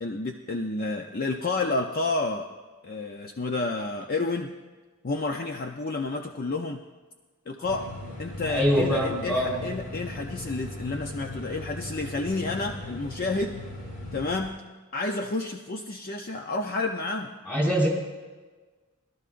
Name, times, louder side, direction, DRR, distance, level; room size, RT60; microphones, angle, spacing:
voice 1, 0.0-2.5 2.8-4.5 5.0-6.8 7.5-7.9 8.2-13.5 14.1-14.5 14.9-17.3, left 3 dB, 40° left, 4 dB, 0.6 m, -30 dB
sound 1, 7.6-14.5, left 1 dB, 75° left, 3.3 m, -38 dB
voice 2, 8.5-9.5 17.5-17.9, equal, 10° left, -3 dB, 4.1 m, -24 dB
22.0 x 12.5 x 2.5 m, 1.3 s
head